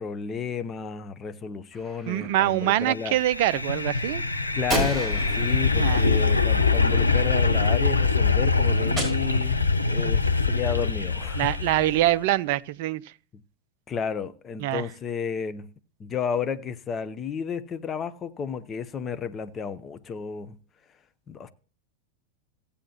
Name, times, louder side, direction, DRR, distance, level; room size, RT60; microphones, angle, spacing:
voice 1, 0.0-3.2 4.5-9.6 9.8-11.5 13.3-13.4 13.9-15.7 16.0-20.6 21.3-21.5, left 6 dB, 25° left, 0.7 m, -32 dB
Gunshot gunfire, 1.7-2.7 4.7-7.1 9.0-9.9, right 1 dB, 5° left, 4.5 m, -34 dB
voice 2, 2.1-4.2 5.7-6.0 11.3-13.0 14.6-14.8, right 14 dB, 50° right, 0.4 m, -24 dB
sound 1, 2.9-12.1, left 4 dB, 85° left, 0.8 m, -23 dB
16.0 x 8.4 x 2.9 m
figure-of-eight pair, 90°, 0 cm